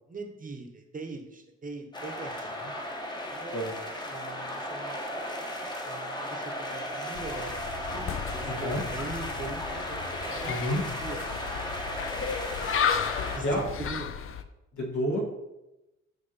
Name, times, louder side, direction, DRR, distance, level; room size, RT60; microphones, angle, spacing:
voice 1, 0.0-2.5 3.3-3.6 4.1-5.0 5.9-12.1 13.1-14.1, right 3 dB, 25° right, 4 dB, 1.0 m, -42 dB
sound 1, 1.9-13.4, left 1 dB, 15° left, 1.0 m, -36 dB
sound 2, 7.1-14.4, left 7 dB, 45° left, 0.5 m, -34 dB
voice 2, 8.5-8.8 10.5-10.8 13.4-13.6 14.7-15.2, equal, 70° left, -2 dB, 1.8 m, -29 dB
5.9 x 3.0 x 5.5 m, 0.96 s
cardioid pair, 90°, 30 cm